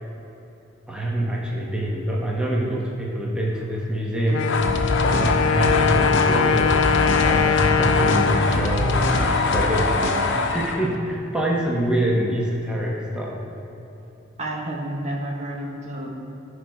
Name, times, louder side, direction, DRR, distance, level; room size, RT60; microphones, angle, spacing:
voice 1, 0.9-4.5 5.0-13.4, right 1 dB, 5° right, -4 dB, 1.1 m, -25 dB
Wind instrument woodwind instrument, 4.3-10.0, left 7 dB, 85° left, 0.4 m, -24 dB
sound 1, 4.4-10.9, left 3 dB, 65° left, 0.8 m, -22 dB
voice 2, 14.4-16.1, right 1 dB, 35° right, -1 dB, 1.3 m, -30 dB
15.0 x 5.0 x 4.7 m, 3.0 s
head